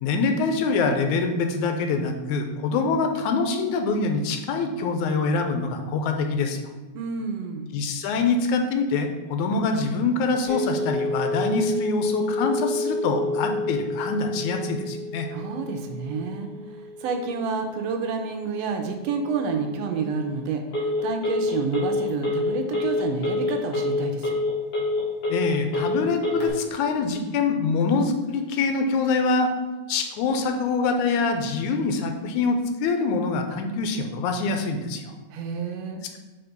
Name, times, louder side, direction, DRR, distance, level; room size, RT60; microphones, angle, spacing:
voice 1, 0.0-6.6 7.7-15.3 25.3-29.5 29.9-35.1, left 4 dB, 85° left, 5 dB, 2.1 m, -25 dB
voice 2, 6.9-7.7 15.3-16.5 17.0-24.4 35.3-36.0, right 5 dB, 75° right, 4 dB, 1.6 m, -29 dB
Telephone, 10.5-26.5, left 2 dB, 55° left, 2.6 m, -28 dB
5.8 x 3.9 x 5.2 m, 1.2 s
omnidirectional pair, 3.3 m